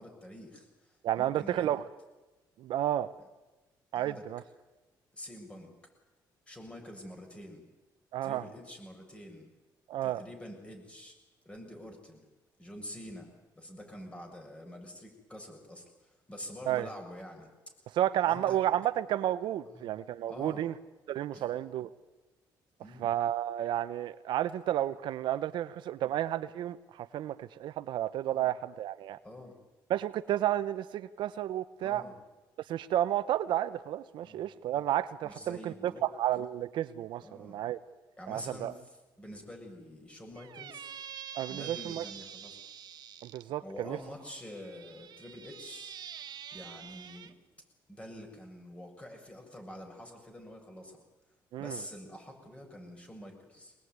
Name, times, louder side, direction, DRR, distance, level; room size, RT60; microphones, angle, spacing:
voice 1, 0.0-1.7 3.9-4.2 5.1-5.7 6.5-7.7 8.2-9.5 10.0-11.2 11.5-12.3 12.6-18.6 19.7-19.9 20.3-20.7 21.3-21.6 22.8-23.1 26.0-26.1 28.3-28.5 29.2-29.6 31.8-32.1 34.2-34.4 35.2-36.1 37.2-37.6 38.2-40.9 41.5-42.6 43.6-45.9 46.5-47.3 47.9-51.0 51.6-53.7, left 1 dB, 15° left, 3 dB, 7.2 m, -47 dB
voice 2, 1.0-1.8 2.6-3.1 3.9-4.4 8.1-8.4 9.9-10.2 16.7-16.9 17.9-20.7 21.1-21.9 23.0-29.2 29.9-32.0 32.7-37.8 38.3-38.7 41.3-42.0 43.2-44.0 51.5-51.8, right 12 dB, 80° right, 13 dB, 0.9 m, -31 dB
Squeak, 40.4-43.4 44.3-47.3, right 9 dB, 60° right, 1.6 m, -46 dB
23.5 x 20.0 x 9.6 m, 1.1 s
cardioid pair, 90°, 8 cm